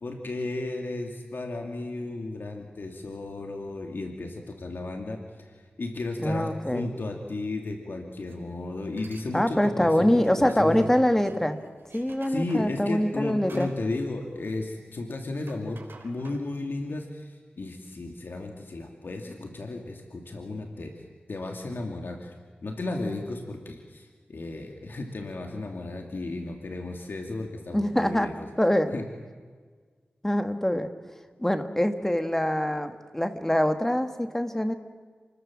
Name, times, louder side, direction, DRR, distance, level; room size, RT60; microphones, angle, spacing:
voice 1, 0.0-10.9 12.3-22.3 22.6-28.3 28.9-29.0, left 2 dB, 65° left, 3 dB, 2.7 m, -34 dB
voice 2, 6.2-6.9 9.3-11.6 11.9-13.7 27.7-28.3 28.6-28.9 30.2-30.9 31.4-34.7, equal, 10° left, 7 dB, 1.9 m, -24 dB
sound 1, 8.3-8.5 8.8-9.3 9.6-14.9 15.2-16.8, right 3 dB, 70° right, 4.1 m, -52 dB
29.5 x 20.5 x 7.6 m, 1.5 s
wide cardioid pair, 80°, 4 cm